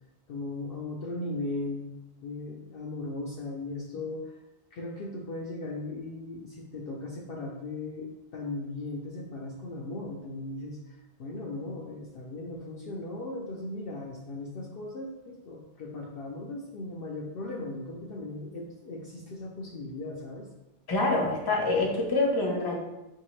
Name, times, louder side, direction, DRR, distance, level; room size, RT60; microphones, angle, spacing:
voice 1, 0.3-4.4 4.7-20.5, left 2 dB, 60° left, -2 dB, 0.7 m, -37 dB
voice 2, 20.9-22.8, left 2 dB, 25° left, 0 dB, 0.6 m, -26 dB
5.2 x 2.7 x 3.1 m, 0.95 s
omnidirectional pair, 1.2 m